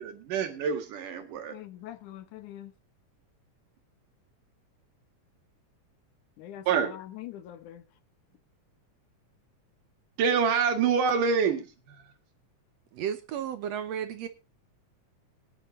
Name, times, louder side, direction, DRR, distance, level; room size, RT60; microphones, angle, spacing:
voice 1, 0.0-1.5 6.7-6.9 10.2-11.7, right 6 dB, 90° right, 3.3 m, -26 dB
voice 2, 1.5-2.7 6.4-7.8, left 12 dB, 75° left, 2.5 m, -43 dB
voice 3, 12.9-14.3, right 9 dB, 70° right, 1.7 m, -33 dB
23.0 x 9.9 x 2.6 m
omnidirectional pair, 3.6 m